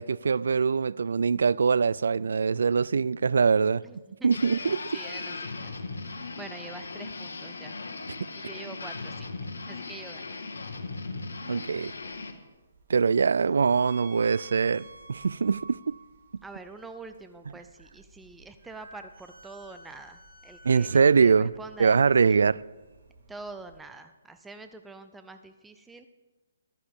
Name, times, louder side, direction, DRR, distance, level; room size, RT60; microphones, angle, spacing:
voice 1, 0.0-3.8 4.2-4.8 11.5-11.9 12.9-16.0 20.6-21.5 21.8-22.6, right 5 dB, 75° right, 0.3 m, -23 dB
voice 2, 3.8-5.7 6.4-7.8 8.4-9.3 9.6-10.3 16.4-22.4 23.3-26.1, right 3 dB, 5° right, 0.5 m, -45 dB
sound 1, 4.3-12.3, left 3 dB, 85° left, 1.5 m, -38 dB
sound 2, 11.6-23.8, right 3 dB, 50° right, 3.1 m, -52 dB
14.5 x 13.0 x 3.6 m
hypercardioid pair, 155°, 0 cm